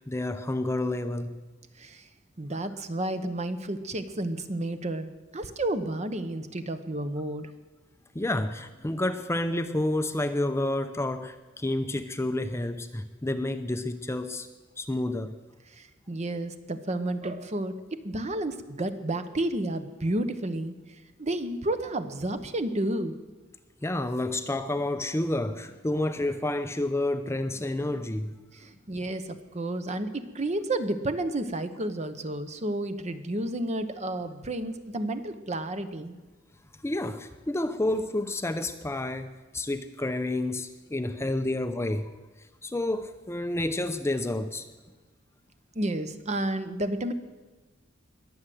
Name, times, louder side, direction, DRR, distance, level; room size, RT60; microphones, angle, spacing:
voice 1, 0.1-1.4 8.1-14.5 14.8-15.3 23.8-28.3 36.8-42.1 42.6-44.7, left 1 dB, 15° left, 9 dB, 0.6 m, -29 dB
voice 2, 1.8-2.1 2.4-7.5 15.7-20.8 21.2-23.1 28.5-36.1 45.7-47.1, right 1 dB, 35° right, 10 dB, 1.0 m, -31 dB
21.0 x 7.8 x 7.7 m, 1.2 s
head